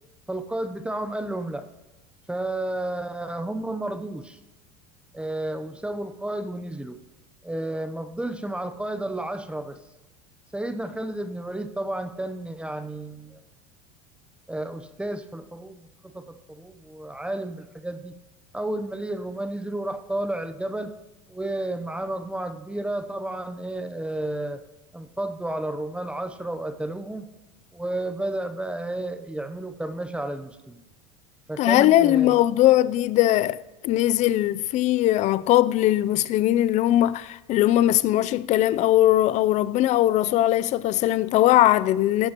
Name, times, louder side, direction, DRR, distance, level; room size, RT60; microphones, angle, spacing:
voice 1, 0.3-1.7 2.3-4.4 5.1-7.0 7.4-9.8 10.5-13.4 14.5-18.1 18.5-21.0 21.3-24.6 24.9-27.3 27.7-30.9 31.5-32.4, right 1 dB, 5° right, 0.7 m, -32 dB
voice 2, 31.6-33.6 33.8-42.3, left 14 dB, 50° left, 0.5 m, -20 dB
16.5 x 13.5 x 3.0 m
supercardioid pair, 100°, 16 cm